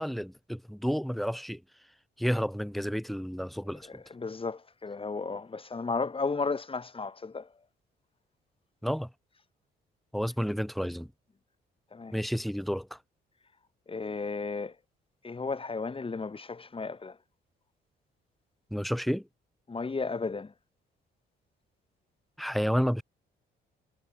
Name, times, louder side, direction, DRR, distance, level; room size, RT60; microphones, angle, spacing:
voice 1, 0.0-1.6 2.2-3.9 8.8-9.1 10.1-11.1 12.1-13.0 18.7-19.3 22.4-23.0, equal, ahead, 5.5 m, -30 dB
voice 2, 3.8-7.5 11.9-12.1 13.9-14.7 15.2-17.2 19.7-20.5, left 4 dB, 25° left, 4.4 m, -34 dB
cardioid pair, 90°, 20 cm